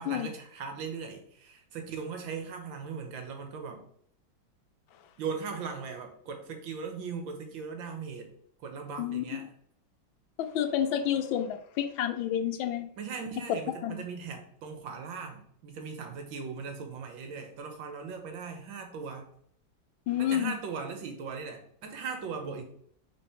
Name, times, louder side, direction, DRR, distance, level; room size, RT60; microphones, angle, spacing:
voice 1, 0.0-3.9 5.2-8.3 8.6-9.4 13.0-19.3 20.2-22.6, right 5 dB, 75° right, 5 dB, 1.9 m, -39 dB
voice 2, 9.0-9.5 10.4-12.9 13.8-14.0 20.1-20.6, left 10 dB, 90° left, 9 dB, 1.5 m, -30 dB
5.9 x 3.9 x 4.9 m, 0.65 s
omnidirectional pair, 2.1 m